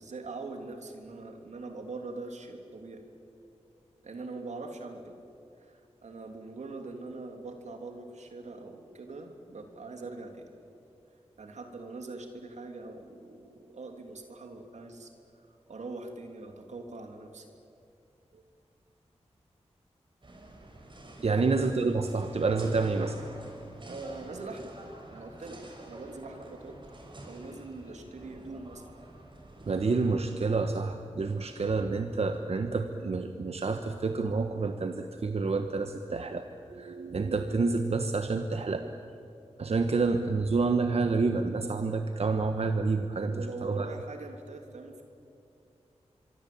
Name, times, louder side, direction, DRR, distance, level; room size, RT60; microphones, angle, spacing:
voice 1, 0.0-3.0 4.0-5.2 5.6-10.5 11.4-15.1 15.7-17.5 21.2-21.5 23.9-24.7 25.1-26.8 27.2-28.9 43.1-45.0, right 3 dB, 85° right, 4 dB, 3.2 m, -42 dB
sound 1, 20.2-30.1, right 1 dB, 45° right, 6.4 m, -48 dB
voice 2, 21.2-23.2 29.7-36.4 36.7-38.8 39.6-43.9, right 4 dB, 60° right, 7 dB, 1.3 m, -28 dB
25.0 x 24.0 x 8.7 m, 2.7 s
cardioid pair, 60°, 12 cm